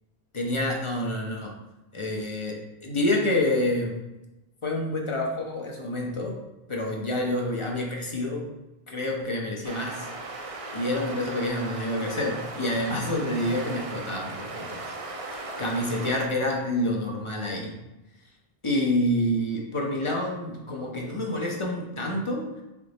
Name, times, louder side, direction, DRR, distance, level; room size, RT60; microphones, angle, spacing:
voice 1, 0.3-1.5 1.9-3.9 4.6-6.4 6.7-8.5 8.9-10.1 10.4-17.7 18.6-22.5, left 1 dB, 35° left, 0 dB, 0.7 m, -28 dB
sound 1, 9.6-16.3, right 2 dB, 45° right, 0.5 m, -37 dB
3.8 x 3.5 x 3.9 m, 0.99 s
omnidirectional pair, 1.0 m